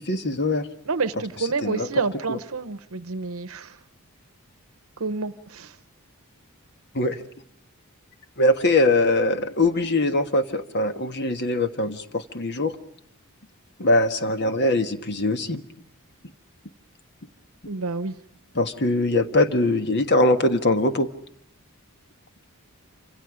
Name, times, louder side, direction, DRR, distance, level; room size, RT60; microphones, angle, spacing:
voice 1, 0.0-0.7 1.6-1.9 2.3-2.4 6.9-7.2 8.4-12.7 13.8-15.6 18.5-21.1, left 2 dB, 50° left, 8 dB, 1.4 m, -22 dB
voice 2, 0.9-3.8 5.0-5.8 17.7-18.1, right 4 dB, 65° right, 12 dB, 0.9 m, -29 dB
28.0 x 26.5 x 5.0 m, 0.67 s
head